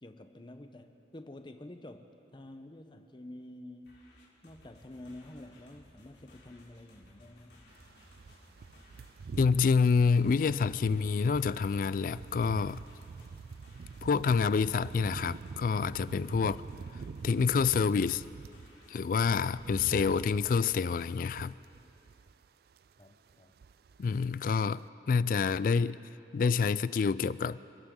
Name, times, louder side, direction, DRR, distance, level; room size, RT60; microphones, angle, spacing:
voice 1, 0.0-4.0 4.4-7.6 23.0-23.5, left 1 dB, 25° left, 7 dB, 0.8 m, -49 dB
sound 1, 3.8-20.3, left 1 dB, 75° left, 3.4 m, -59 dB
sound 2, 7.8-18.7 19.0-22.5 22.7-23.0 23.3-24.1 24.4-24.6, right 4 dB, 60° right, 0.3 m, -45 dB
voice 2, 9.4-12.8 14.0-16.6 17.2-18.2 18.9-21.6 24.0-26.0 26.3-27.6, left 5 dB, 50° left, 17 dB, 0.3 m, -27 dB
28.5 x 13.5 x 3.8 m, 2.8 s
head